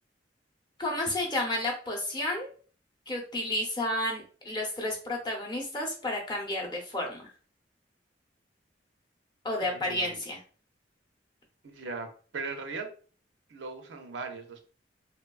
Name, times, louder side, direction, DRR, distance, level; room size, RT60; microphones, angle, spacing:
voice 1, 0.8-2.5 3.1-7.3 9.4-10.4, left 1 dB, 25° left, 0 dB, 0.7 m, -31 dB
voice 2, 9.6-10.2 11.6-12.9 13.5-14.6, right 4 dB, 85° right, 5 dB, 0.5 m, -39 dB
2.9 x 2.2 x 2.3 m, 0.40 s
head